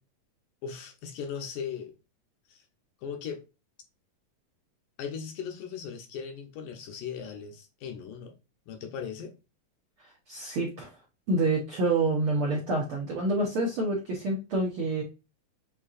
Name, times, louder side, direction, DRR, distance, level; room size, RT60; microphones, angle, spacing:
voice 1, 0.6-1.9 2.5-2.7 3.0-3.4 5.0-8.3 8.7-9.3, left 7 dB, 75° left, 2.1 m, -38 dB
voice 2, 10.3-10.9 11.3-15.0, right 2 dB, 70° right, 1.3 m, -27 dB
7.1 x 2.8 x 2.4 m
omnidirectional pair, 4.0 m